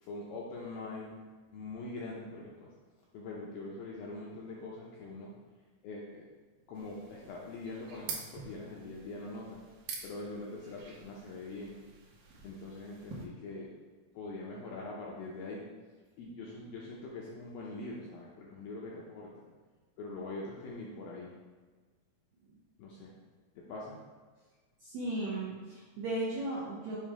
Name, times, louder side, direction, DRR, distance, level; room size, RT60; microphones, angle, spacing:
voice 1, 0.0-1.2 1.5-2.7 3.1-5.3 5.8-6.3 6.7-9.6 10.0-11.8 12.4-13.7 14.1-15.7 16.2-19.4 20.0-21.3 22.8-23.1 23.6-24.0, left 2 dB, 80° left, -4 dB, 2.1 m, -43 dB
sound 1, 6.7-13.3, right 5 dB, 70° right, 2.1 m, -47 dB
voice 2, 24.8-27.0, right 1 dB, 90° right, -7 dB, 1.5 m, -36 dB
7.2 x 2.7 x 4.8 m, 1.4 s
omnidirectional pair, 4.9 m